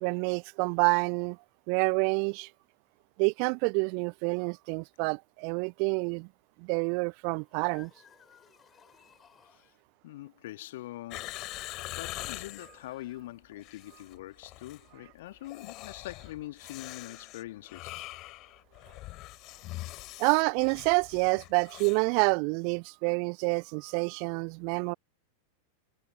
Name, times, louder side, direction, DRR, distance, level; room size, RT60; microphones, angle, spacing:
voice 1, 0.0-1.4 1.7-2.5 3.2-6.3 6.6-7.9 20.2-24.9, right 40 dB or more, 45° right, 0.3 m, -28 dB
sound 1, 7.4-9.8 11.2-13.7, left 8 dB, 25° left, 7.5 m, -60 dB
voice 2, 10.0-11.3 11.6-18.0, left 16 dB, 55° left, 1.9 m, -43 dB
sound 2, 11.1-12.7 13.5-14.2 14.4-14.8 15.4-22.1 22.3-22.4, left 19 dB, 40° left, 3.2 m, -43 dB
figure-of-eight pair, 90°, 0 cm